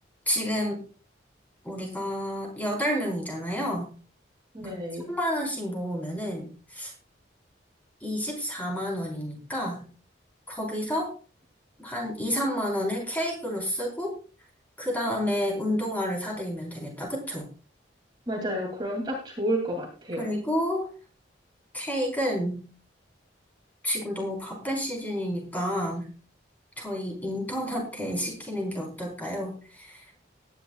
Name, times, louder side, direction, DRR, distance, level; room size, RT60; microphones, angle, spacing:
voice 1, 0.3-0.8 1.6-3.9 4.6-4.7 5.1-6.9 8.0-9.8 10.5-11.1 11.8-14.2 14.8-17.4 20.2-20.9 21.7-22.6 23.8-26.1 26.8-30.0, equal, 10° left, -1 dB, 4.4 m, -30 dB
voice 2, 4.5-5.1 18.3-20.3, right 1 dB, 25° right, 0 dB, 2.8 m, -30 dB
19.0 x 10.5 x 2.4 m, 0.36 s
head